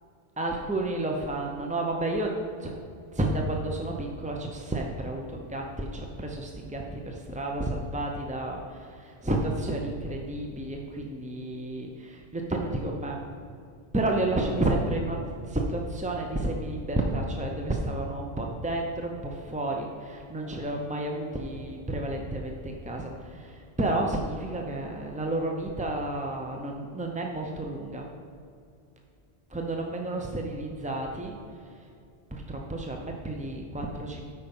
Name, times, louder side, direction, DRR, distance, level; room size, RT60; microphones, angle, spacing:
voice 1, 0.4-2.8 3.1-13.2 13.9-15.2 15.5-28.1 29.5-31.4 31.8-31.9 32.3-34.3, right 2 dB, 10° right, 1 dB, 0.3 m, -31 dB
8.6 x 5.3 x 5.4 m, 2.4 s
omnidirectional pair, 1.1 m